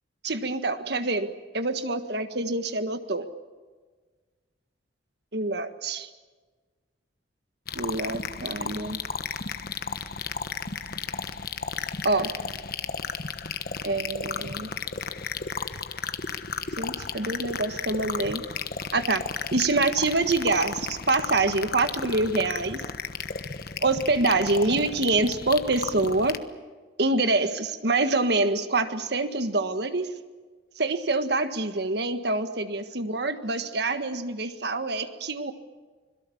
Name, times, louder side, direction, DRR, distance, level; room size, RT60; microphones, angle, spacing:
voice 1, 0.2-3.3 5.3-6.1 7.7-9.0 12.0-12.3 13.8-14.7 16.8-18.4 18.9-19.2 19.5-22.8 23.8-26.4 27.0-30.1 30.8-35.5, right 2 dB, 60° right, 9 dB, 1.6 m, -26 dB
sound 1, 7.7-26.4, left 5 dB, 55° left, 1.2 m, -34 dB
26.0 x 22.5 x 7.2 m, 1.4 s
head